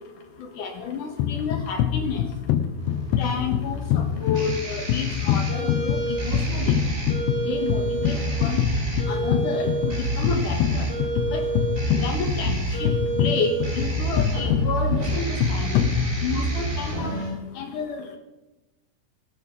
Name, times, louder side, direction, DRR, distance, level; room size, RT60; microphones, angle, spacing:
voice 1, 0.6-2.3 3.2-6.7 7.5-8.6 9.1-10.9 11.3-11.5 12.0-15.9 16.2-17.2 17.6-18.2, left 5 dB, 65° left, 5 dB, 2.3 m, -30 dB
sound 1, 1.2-16.6, left 10 dB, 80° left, 2.9 m, -26 dB
sound 2, 2.8-17.3, right 3 dB, 20° right, 4.5 m, -28 dB
17.5 x 11.5 x 5.4 m, 1.0 s
omnidirectional pair, 5.0 m